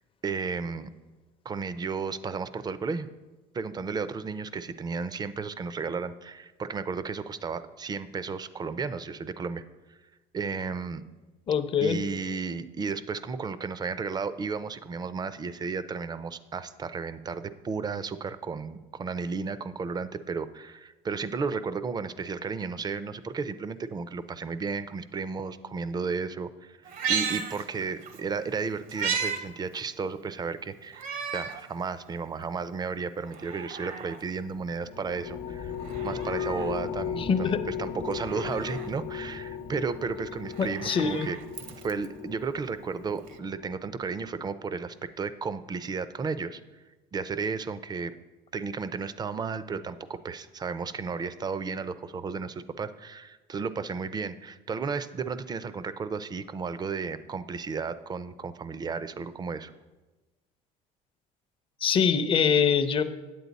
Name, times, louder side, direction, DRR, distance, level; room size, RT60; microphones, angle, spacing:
voice 1, 0.2-0.9 1.4-3.1 3.5-9.6 10.3-11.0 11.8-31.1 31.3-35.7 36.0-41.4 41.8-46.6 47.1-48.1 48.5-59.7, right 5 dB, 25° right, 14 dB, 0.5 m, -33 dB
voice 2, 11.5-12.0 37.2-37.6 40.6-41.3 61.8-63.0, left 6 dB, 35° left, 10 dB, 0.6 m, -24 dB
Meow, 26.9-28.2 28.5-29.4 29.8-29.9 30.9-31.6 32.1-32.2 33.2-34.2 35.7-36.7 38.1-38.9 40.4-42.1 43.3-43.4, right 6 dB, 60° right, 0.8 m, -34 dB
sound 1, 34.5-44.2, left 7 dB, 90° left, 0.9 m, -37 dB
9.3 x 7.8 x 4.1 m, 1.2 s
supercardioid pair, 95°, 16 cm